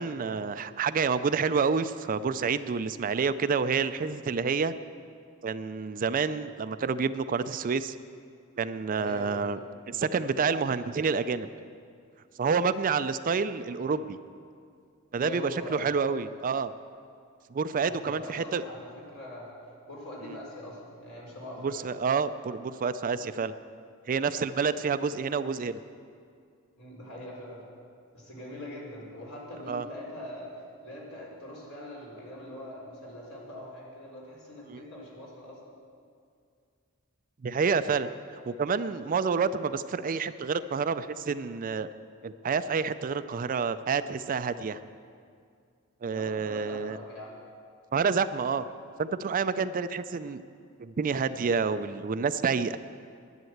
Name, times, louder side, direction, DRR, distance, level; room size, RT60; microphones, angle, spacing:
voice 1, 0.0-4.7 5.4-7.9 8.6-9.6 9.9-11.5 12.4-14.2 15.1-16.7 17.5-18.6 20.2-20.4 21.6-23.5 24.1-25.8 29.7-29.9 34.7-34.9 37.4-41.9 42.2-44.8 46.0-47.0 47.9-48.6 49.0-50.4 50.8-52.8, right 5 dB, 40° right, 13 dB, 0.4 m, -28 dB
voice 2, 8.9-9.5 15.1-15.8 17.9-19.5 19.9-21.7 26.8-27.6 28.1-30.5 30.8-35.6 38.3-38.6 46.1-47.4, left 1 dB, 80° left, -4 dB, 4.2 m, -42 dB
11.0 x 10.0 x 7.9 m, 2.3 s
head